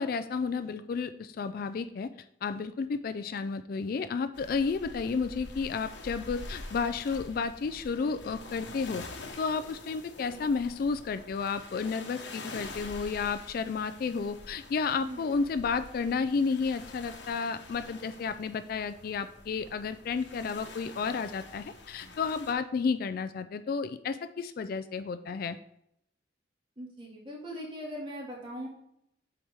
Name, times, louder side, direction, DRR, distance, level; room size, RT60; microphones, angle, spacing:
voice 1, 0.0-2.1 2.4-9.1 9.4-25.6, left 5 dB, 50° left, 11 dB, 0.3 m, -32 dB
sound 1, 4.3-22.5, left 2 dB, 70° left, 1.0 m, -46 dB
voice 2, 26.8-28.7, equal, 25° right, -3 dB, 2.0 m, -40 dB
7.2 x 4.7 x 3.4 m, 0.78 s
head